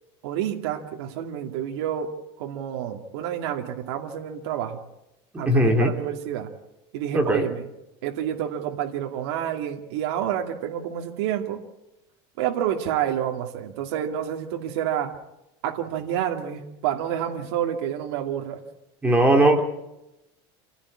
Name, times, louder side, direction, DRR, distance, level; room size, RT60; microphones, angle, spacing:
voice 1, 0.2-2.1 2.4-4.8 5.4-6.5 6.9-7.6 8.0-11.6 12.4-15.1 15.6-18.6, right 10 dB, 75° right, 2 dB, 2.4 m, -29 dB
voice 2, 5.3-5.9 7.1-7.5 19.0-19.6, right 1 dB, 10° right, 3 dB, 2.6 m, -19 dB
27.5 x 16.0 x 8.6 m, 0.93 s
supercardioid pair, 160°, 14 cm